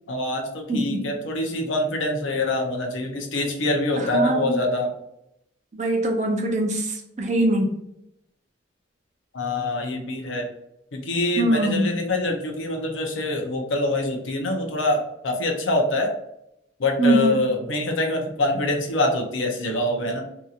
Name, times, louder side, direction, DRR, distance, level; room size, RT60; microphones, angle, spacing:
voice 1, 0.1-4.9 9.3-10.5 10.9-16.1 16.8-20.2, left 2 dB, 80° left, 2 dB, 0.6 m, -25 dB
voice 2, 0.7-1.0 4.0-4.6 5.7-7.8 11.4-12.0 17.0-17.4, right 1 dB, 35° right, 2 dB, 0.5 m, -23 dB
2.8 x 2.6 x 2.4 m, 0.82 s
head